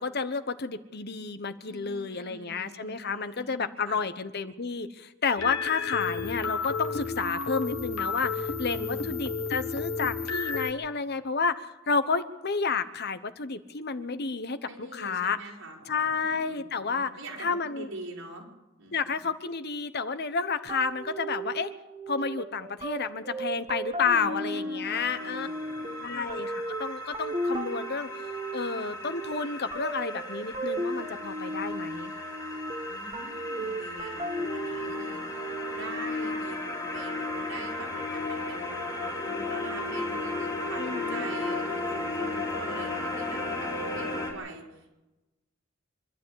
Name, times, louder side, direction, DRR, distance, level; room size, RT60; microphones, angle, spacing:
voice 1, 0.0-15.4 15.9-17.1 17.4-17.9 18.9-21.7 22.1-25.5 26.0-28.1 28.5-32.1 40.8-41.3, left 5 dB, 50° left, 11 dB, 1.1 m, -31 dB
voice 2, 1.6-4.0 8.7-9.2 14.6-18.5 18.8-19.2 24.1-26.2 32.8-44.9, right 2 dB, 85° right, -2 dB, 5.9 m, -44 dB
sound 1, 5.4-10.7, left 5 dB, 70° left, 1.8 m, -32 dB
sound 2, 20.7-36.0, right 1 dB, 25° right, 1.8 m, -36 dB
sound 3, 24.9-44.3, left 2 dB, 20° left, 4.3 m, -35 dB
25.0 x 12.5 x 8.8 m, 1.0 s
head